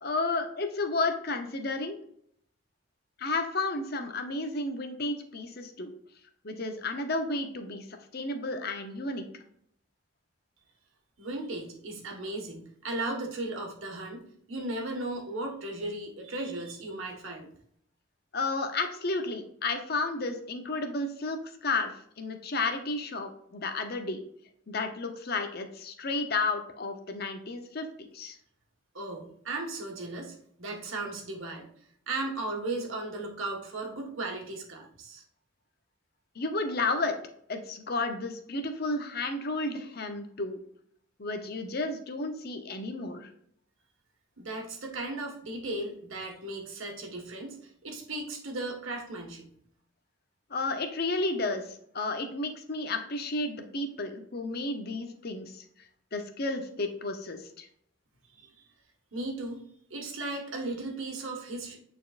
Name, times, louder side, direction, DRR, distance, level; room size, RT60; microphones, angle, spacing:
voice 1, 0.0-2.0 3.2-5.9 6.4-7.9 8.1-9.3 18.3-24.2 24.7-27.9 28.1-28.4 36.4-37.1 37.5-40.6 41.2-43.3 50.5-55.6 56.1-57.7, left 3 dB, 50° left, 6 dB, 0.8 m, -32 dB
voice 2, 11.2-14.2 14.5-17.5 28.9-31.7 32.1-35.2 44.4-49.5 58.3-58.5 59.1-59.6 59.9-61.8, right 2 dB, 80° right, 1 dB, 1.6 m, -36 dB
9.0 x 4.3 x 2.5 m, 0.67 s
head